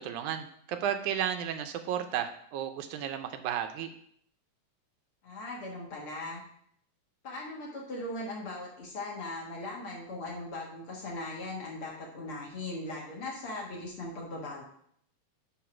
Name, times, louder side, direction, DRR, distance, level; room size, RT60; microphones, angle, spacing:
voice 1, 0.0-3.9, right 9 dB, 80° right, 8 dB, 1.9 m, -33 dB
voice 2, 5.2-6.4 7.2-14.6, left 2 dB, 50° left, -2 dB, 1.9 m, -39 dB
9.3 x 3.7 x 5.9 m, 0.67 s
omnidirectional pair, 3.6 m